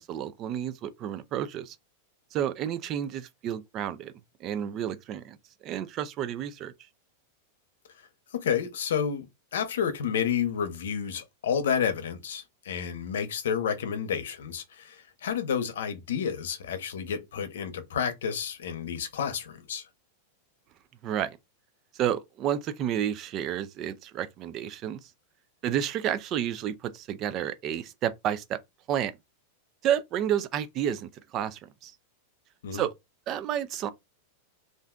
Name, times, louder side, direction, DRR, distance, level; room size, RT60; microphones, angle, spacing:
voice 1, 0.0-1.8 2.3-4.1 4.4-5.4 5.6-6.7 21.0-21.4 21.9-25.1 25.6-28.6 28.9-29.1 29.8-31.9 32.7-32.9 33.3-33.9, right 10 dB, 30° right, 0.4 m, -30 dB
voice 2, 8.3-9.3 9.5-19.9 32.6-32.8, left 7 dB, 90° left, 0.7 m, -30 dB
2.5 x 2.2 x 3.6 m
supercardioid pair, 155°, 0 cm